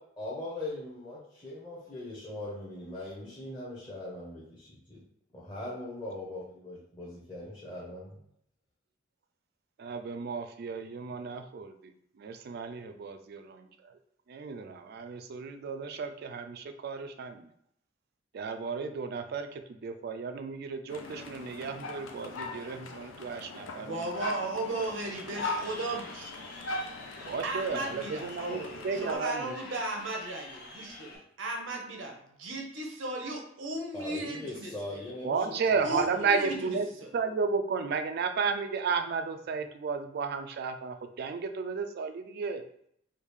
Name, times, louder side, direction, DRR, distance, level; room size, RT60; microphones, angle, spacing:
voice 1, 0.2-5.0 5.3-8.1 33.9-36.2, left 1 dB, 20° left, -7 dB, 0.8 m, -40 dB
voice 2, 9.8-14.0 14.3-17.5 18.3-24.1 27.3-29.5 35.2-36.9 37.1-42.6, right 5 dB, 55° right, 8 dB, 0.3 m, -33 dB
sound 1, 20.9-29.2, left 3 dB, 85° left, 0.5 m, -40 dB
voice 3, 23.8-26.3 26.8-26.9 27.4-35.0 35.8-37.1, right 2 dB, 80° right, 2 dB, 0.8 m, -36 dB
Crowd, 24.7-31.2, left 3 dB, 50° left, 0.8 m, -48 dB
3.5 x 2.4 x 3.1 m, 0.71 s
head